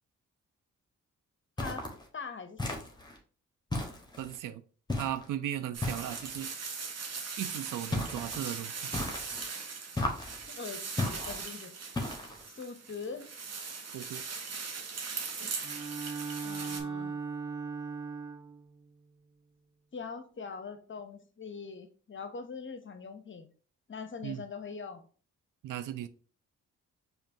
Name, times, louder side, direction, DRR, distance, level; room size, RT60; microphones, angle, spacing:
voice 1, 1.6-2.8 10.5-11.7 12.5-13.3 16.4-17.1 19.9-23.5 23.9-25.1, left 5 dB, 35° left, 0.7 m, -42 dB
sound 1, 1.6-2.0 2.6-3.2 3.7-4.4 4.9-5.3 5.8-6.4 7.9-8.4 8.9-9.4 10.0-10.4 11.0-11.4 12.0-12.4, left 2 dB, 15° left, 1.1 m, -35 dB
voice 2, 4.2-4.6 5.0-6.5 7.4-8.9 13.9-14.2 24.2-24.4 25.6-26.1, right 11 dB, 70° right, 0.5 m, -37 dB
sound 2, 5.7-16.8, right 5 dB, 50° right, 0.8 m, -40 dB
Bowed string instrument, 15.6-18.7, right 5 dB, 10° right, 0.8 m, -38 dB
5.1 x 2.5 x 2.7 m
supercardioid pair, 45°, 33 cm